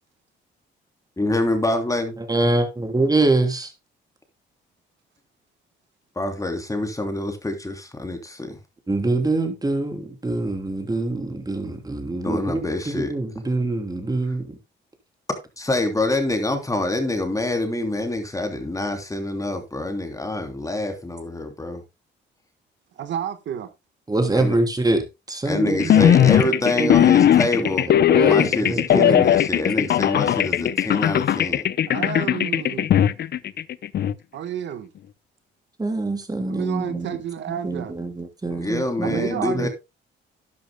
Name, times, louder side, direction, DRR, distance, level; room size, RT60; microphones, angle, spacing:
voice 1, 1.2-2.2 6.1-8.6 12.2-13.1 15.6-21.8 24.3-24.6 25.4-27.9 28.2-31.6 38.5-39.7, left 2 dB, 15° left, 3.1 m, -26 dB
voice 2, 2.2-3.7 8.9-14.6 24.1-26.3 26.7-26.9 27.6-29.3 35.8-37.2 37.5-39.3 39.6-39.7, right 2 dB, 20° right, 3.2 m, -25 dB
voice 3, 23.0-23.7 31.9-32.9 34.3-34.9 36.5-37.9 39.0-39.7, right 9 dB, 65° right, 1.4 m, -30 dB
sound 1, 25.8-34.1, left 10 dB, 55° left, 0.6 m, -18 dB
12.5 x 10.5 x 2.2 m
cardioid pair, 90°, 20 cm